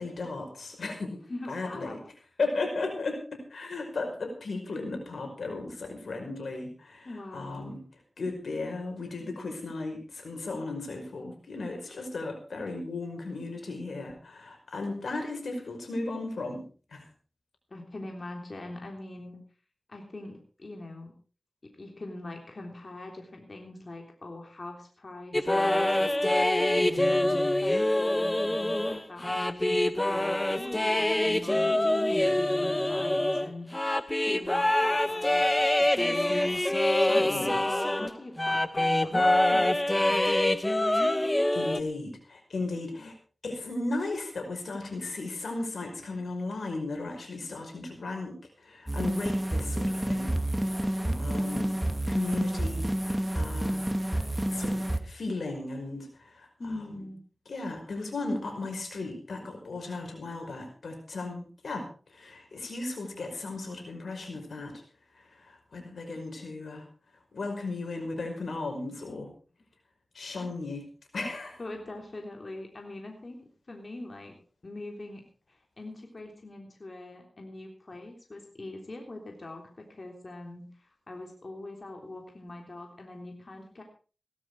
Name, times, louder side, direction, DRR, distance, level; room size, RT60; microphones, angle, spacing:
voice 1, 0.0-1.2 1.5-2.0 2.4-7.8 8.2-16.6 16.9-17.0 37.0-37.6 41.5-43.1 43.4-50.3 51.2-51.7 52.1-56.5 57.5-64.8 65.2-66.8 67.3-69.3 70.1-70.8 71.1-71.6, left 3 dB, 85° left, 4 dB, 5.3 m, -36 dB
voice 2, 1.3-2.0 7.1-7.8 17.7-19.4 19.9-21.1 21.6-36.7 37.0-40.4 51.0-51.8 56.6-57.2 70.4-70.5 71.6-74.4 74.6-75.2 75.5-83.8, left 2 dB, 50° left, 2 dB, 3.5 m, -42 dB
sound 1, 25.3-38.1 38.4-41.8, left 1 dB, 20° left, 1.1 m, -25 dB
sound 2, 48.9-55.0, right 1 dB, 10° right, 2.1 m, -29 dB
17.5 x 12.5 x 4.8 m, 0.38 s
wide cardioid pair, 55°, 0 cm